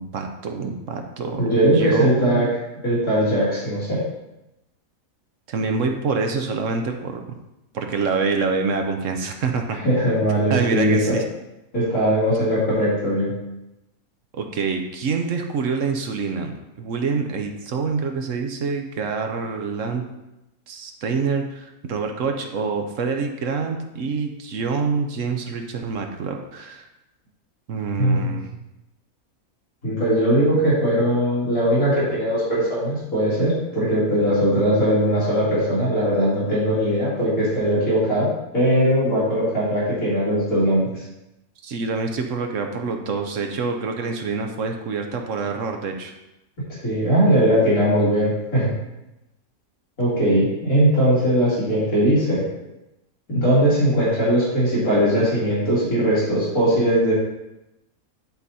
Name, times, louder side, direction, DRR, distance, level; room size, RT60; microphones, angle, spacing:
voice 1, 0.0-2.5 5.5-7.2 7.7-9.8 10.5-11.2 14.3-20.0 20.7-26.8 27.7-28.5 41.6-46.1, right 4 dB, 65° right, 4 dB, 1.2 m, -26 dB
voice 2, 1.4-2.5 2.8-4.0 9.8-11.2 11.7-13.3 28.0-28.4 29.8-41.0 46.7-48.7 50.0-52.4 53.3-57.1, equal, 70° left, -9 dB, 3.4 m, -20 dB
10.5 x 4.1 x 4.1 m, 0.94 s
omnidirectional pair, 1.5 m